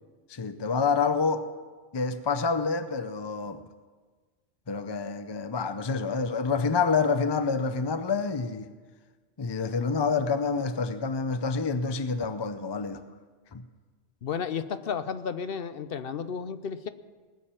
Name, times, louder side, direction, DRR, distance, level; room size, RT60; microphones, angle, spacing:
voice 1, 0.3-1.5 1.9-3.7 4.7-8.7 9.4-13.0 13.5-13.7, left 4 dB, 40° left, 0.4 m, -28 dB
voice 2, 14.2-16.9, left 6 dB, 55° left, 0.8 m, -33 dB
20.0 x 7.2 x 8.8 m
omnidirectional pair, 1.3 m